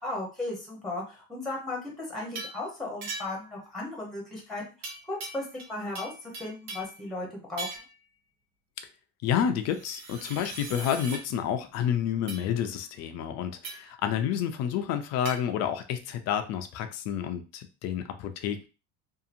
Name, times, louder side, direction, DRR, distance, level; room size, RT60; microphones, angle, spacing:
voice 1, 0.0-4.6 5.1-7.8, left 2 dB, ahead, -2 dB, 0.8 m, -36 dB
sound 1, 2.3-2.6 3.0-3.5 4.8-5.7 5.9-7.0 7.6-8.0 9.7-11.2 12.3-12.5 13.6-13.9 15.2-15.4, right 3 dB, 90° right, 1.0 m, -39 dB
voice 2, 9.2-18.7, left 9 dB, 40° left, 8 dB, 0.4 m, -29 dB
2.8 x 2.5 x 2.5 m, 0.32 s
cardioid pair, 140°, 41 cm